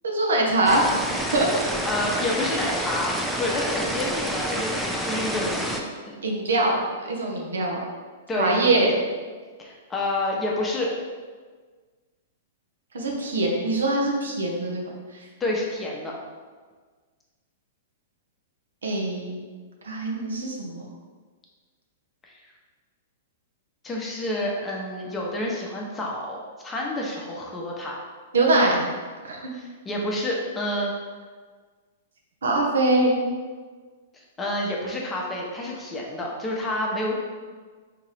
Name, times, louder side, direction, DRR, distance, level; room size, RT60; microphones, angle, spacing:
voice 1, 0.0-0.9 1.3-1.5 6.2-7.8 8.4-8.9 12.9-15.3 18.8-19.4 19.8-20.8 28.3-28.8 29.2-29.5 32.4-33.1, right 2 dB, 85° right, -1 dB, 0.7 m, -23 dB
sound 1, 0.7-5.8, equal, ahead, 0.4 m, -28 dB
voice 2, 1.8-3.1 3.4-6.2 8.3-8.8 9.6-10.9 15.4-16.2 22.2-22.3 23.8-26.4 26.6-28.0 29.5-30.9 34.1-37.1, left 1 dB, 15° left, -2 dB, 0.8 m, -29 dB
3.6 x 2.9 x 3.3 m, 1.5 s
hypercardioid pair, 120°, 0 cm